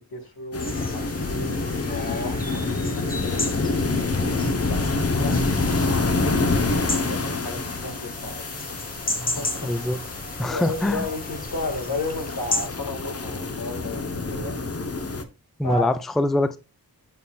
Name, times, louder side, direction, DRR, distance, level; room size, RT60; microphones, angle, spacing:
voice 1, 0.0-1.5 1.8-4.0 4.6-5.0 5.2-5.4 6.0-8.4 9.2-9.7 10.4-14.6 15.6-15.9, left 3 dB, 80° left, 1.8 m, -34 dB
sound 1, 0.5-15.2, left 3 dB, 40° left, 0.8 m, -27 dB
sound 2, 0.6-12.7, left 2 dB, 25° left, 1.1 m, -34 dB
voice 2, 9.6-10.0 10.4-11.1 15.6-16.6, left 1 dB, ahead, 0.4 m, -23 dB
8.7 x 5.5 x 2.3 m
wide cardioid pair, 85°, 37 cm